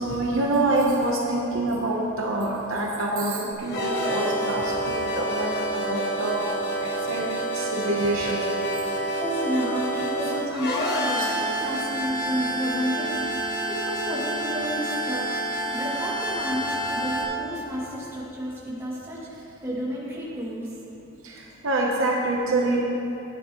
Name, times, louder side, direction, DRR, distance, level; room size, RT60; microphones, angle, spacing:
voice 1, 0.0-6.5 6.8-7.3 7.5-8.4 11.2-11.3 21.2-22.8, right 2 dB, 65° right, -2 dB, 1.0 m, -26 dB
sound 1, 3.5-17.2, right 1 dB, 50° left, 1.5 m, -28 dB
voice 2, 8.8-13.1 13.4-15.3 15.7-20.7, equal, 10° right, -9 dB, 2.5 m, -31 dB
14.5 x 9.8 x 3.1 m, 2.8 s
head